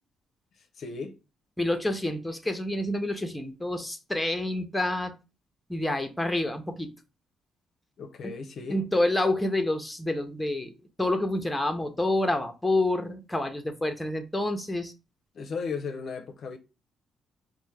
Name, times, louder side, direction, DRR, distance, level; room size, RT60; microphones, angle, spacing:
voice 1, 0.8-1.2 8.0-8.8 15.3-16.6, left 5 dB, 60° left, 0.5 m, -35 dB
voice 2, 1.6-5.1 5.7-6.9 8.2-8.3 8.7-14.9, left 1 dB, 5° left, 0.6 m, -28 dB
4.3 x 2.1 x 3.2 m
cardioid pair, 90°, 0 cm